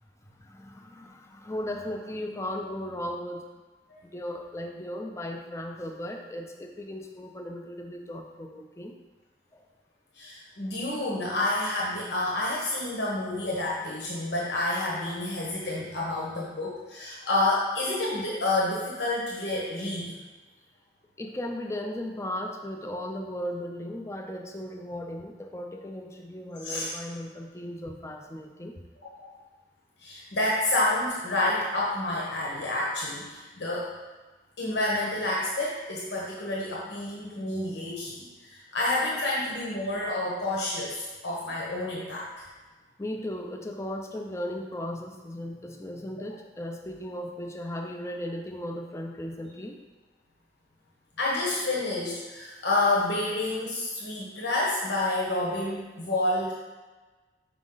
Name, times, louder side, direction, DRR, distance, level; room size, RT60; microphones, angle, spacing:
voice 1, 0.4-3.4 4.0-9.0 9.5-9.7 21.2-28.8 43.0-49.8, left 1 dB, 15° left, 2 dB, 0.5 m, -36 dB
voice 2, 10.1-20.1 26.6-26.9 29.2-29.3 30.0-33.9 34.6-42.3 51.2-56.5, left 2 dB, 80° left, -4 dB, 1.2 m, -29 dB
6.2 x 5.0 x 3.9 m, 1.2 s
head